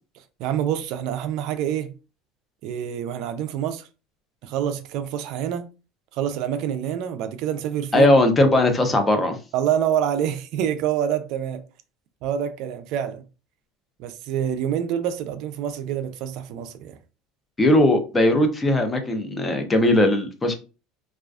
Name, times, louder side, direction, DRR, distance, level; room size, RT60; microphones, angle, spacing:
voice 1, 0.4-1.9 2.6-3.9 4.4-5.7 6.1-8.1 9.5-11.6 12.2-13.2 14.0-17.0, right 9 dB, 60° right, 0.3 m, -26 dB
voice 2, 7.9-9.4 17.6-20.5, left 1 dB, 15° left, 0.5 m, -19 dB
2.3 x 2.2 x 2.3 m
supercardioid pair, 120°, 0 cm